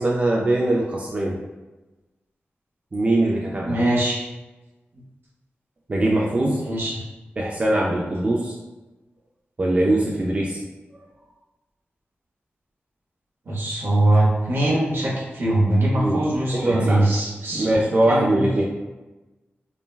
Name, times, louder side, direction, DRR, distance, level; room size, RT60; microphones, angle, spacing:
voice 1, 0.0-1.4 2.9-3.8 5.9-6.6 7.4-8.5 9.6-10.6 16.0-16.2 16.5-17.1 17.5-18.6, right 1 dB, 30° right, -3 dB, 0.3 m, -21 dB
voice 2, 3.6-4.2 6.4-7.0 13.5-17.7 18.1-18.5, right 1 dB, 60° right, -5 dB, 0.7 m, -22 dB
3.2 x 2.1 x 2.2 m, 1.1 s
wide cardioid pair, 105°, 4 cm